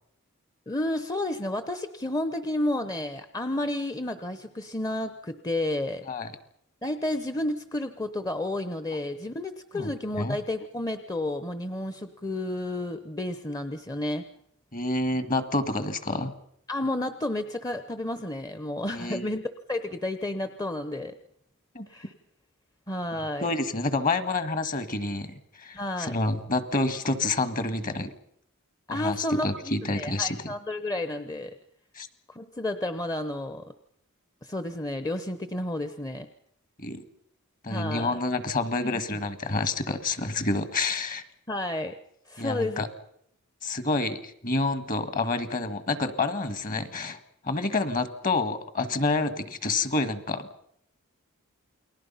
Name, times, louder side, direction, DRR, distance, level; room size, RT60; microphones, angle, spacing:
voice 1, 0.7-6.0 6.8-14.3 16.7-19.4 19.7-21.2 21.9-22.1 22.9-23.5 25.7-26.2 28.9-31.6 32.3-33.7 34.4-36.3 37.7-38.2 38.8-39.0 41.5-42.0 42.3-42.8, left 1 dB, 15° left, 10 dB, 0.8 m, -31 dB
voice 2, 9.7-10.4 14.7-16.3 18.9-19.3 21.8-21.9 23.4-28.1 28.9-30.5 32.0-32.1 36.8-37.0 37.6-41.2 42.4-42.9 43.6-47.2 47.4-50.5, left 3 dB, 40° left, 12 dB, 1.7 m, -28 dB
29.0 x 20.5 x 5.7 m, 0.74 s
head